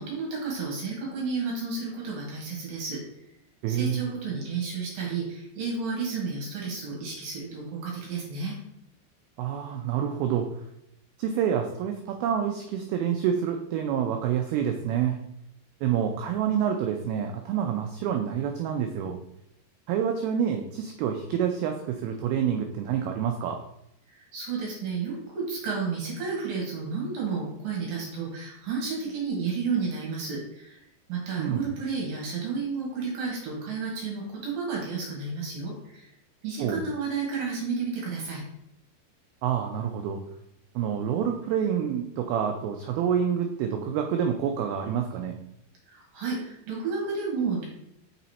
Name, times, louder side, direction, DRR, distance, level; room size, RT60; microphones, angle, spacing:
voice 1, 0.0-3.0 3.7-8.6 24.1-30.8 31.1-36.1 36.4-38.4 45.9-47.7, right 4 dB, 65° right, -3 dB, 2.9 m, -31 dB
voice 2, 3.6-4.1 9.4-10.5 11.2-15.2 15.8-19.2 19.9-23.6 31.4-31.6 36.6-36.9 39.4-40.2 40.8-45.4, right 8 dB, 90° right, 4 dB, 2.1 m, -27 dB
6.3 x 4.1 x 4.2 m, 0.79 s
omnidirectional pair, 4.9 m